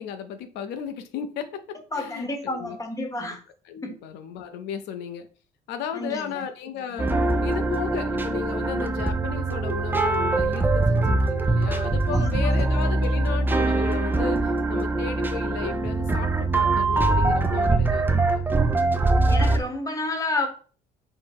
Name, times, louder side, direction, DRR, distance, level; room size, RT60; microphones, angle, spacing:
voice 1, 0.0-2.8 3.2-3.4 3.7-5.3 5.7-7.1 7.4-18.5, left 8 dB, 85° left, 0.6 m, -34 dB
voice 2, 1.9-3.4 3.8-3.9 5.9-6.4 12.1-12.7 19.3-20.5, left 2 dB, 20° left, 1.0 m, -30 dB
sound 1, 7.0-19.6, right 2 dB, 10° right, 0.5 m, -23 dB
4.5 x 2.1 x 4.6 m
cardioid pair, 110°, 17 cm